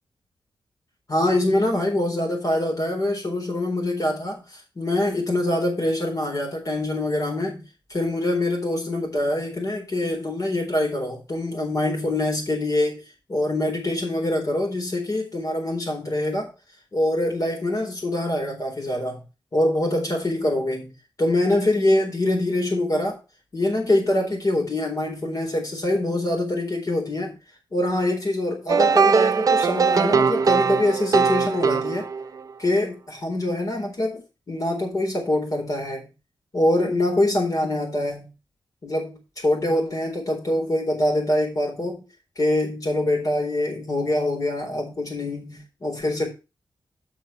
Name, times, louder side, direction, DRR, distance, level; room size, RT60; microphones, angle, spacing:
voice 1, 1.1-4.4 4.8-7.6 7.9-13.0 13.3-16.5 16.9-19.2 19.5-20.9 21.2-23.2 23.5-27.3 27.7-32.0 32.6-36.1 36.5-38.3 38.8-42.1 42.4-46.3, left 1 dB, 40° left, 4.1 m, -24 dB
sound 1, 28.7-32.5, right 5 dB, 45° right, 0.4 m, -20 dB
8.0 x 6.2 x 5.8 m
wide cardioid pair, 165°, 8 cm